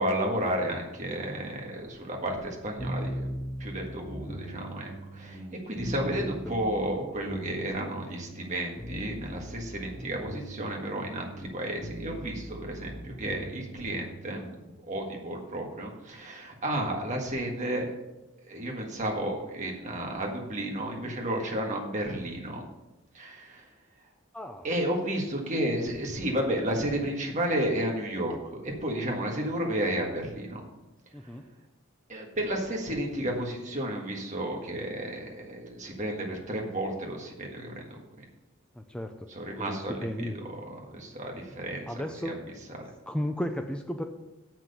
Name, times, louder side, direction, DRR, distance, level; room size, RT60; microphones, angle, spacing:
voice 1, 0.0-3.3 3.6-14.4 14.8-17.9 18.5-22.6 23.1-23.7 24.6-30.6 31.2-31.4 32.1-38.0 39.3-42.3 42.8-42.9, right 1 dB, 35° right, 0 dB, 1.6 m, -32 dB
sound 1, 2.8-14.6, right 1 dB, 30° left, 3.0 m, -40 dB
voice 2, 24.3-24.7 31.1-31.5 38.8-39.3 39.6-40.4 41.9-42.4 43.1-44.0, equal, 5° left, 5 dB, 0.4 m, -34 dB
7.6 x 6.0 x 6.7 m, 1.0 s
head